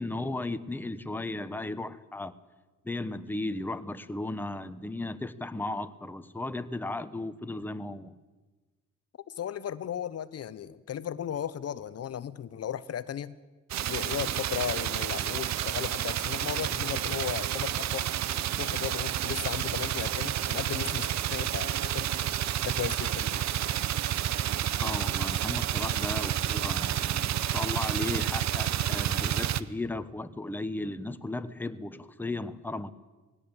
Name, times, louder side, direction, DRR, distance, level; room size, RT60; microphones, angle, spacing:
voice 1, 0.0-2.3 2.8-8.1 24.8-32.9, left 2 dB, 5° left, 1.0 m, -35 dB
voice 2, 9.3-13.4 13.9-18.1 18.6-22.3 22.6-23.4, left 9 dB, 55° left, 0.9 m, -36 dB
sound 1, 13.7-29.6, right 11 dB, 65° right, 0.8 m, -30 dB
19.5 x 17.0 x 8.8 m
cardioid pair, 90°, 30 cm